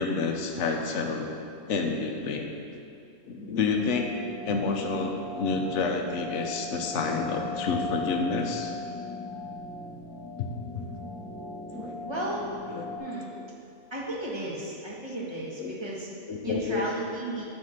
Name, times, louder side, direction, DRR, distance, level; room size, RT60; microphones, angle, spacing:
voice 1, 0.0-1.3 1.7-2.5 3.3-4.2 4.4-8.7 10.4-10.5 10.7-10.9 11.7-12.0 12.7-12.9 13.3-13.5 15.6-15.7 16.3-16.8, left 4 dB, 60° left, 2 dB, 1.0 m, -29 dB
sound 1, 3.7-13.0, left 3 dB, 15° left, 0.8 m, -38 dB
voice 2, 9.2-10.2 12.0-12.5 13.0-13.3 13.9-16.1 16.4-17.4, right 1 dB, 20° right, -5 dB, 1.4 m, -35 dB
9.3 x 4.2 x 6.6 m, 2.6 s
omnidirectional pair, 1.6 m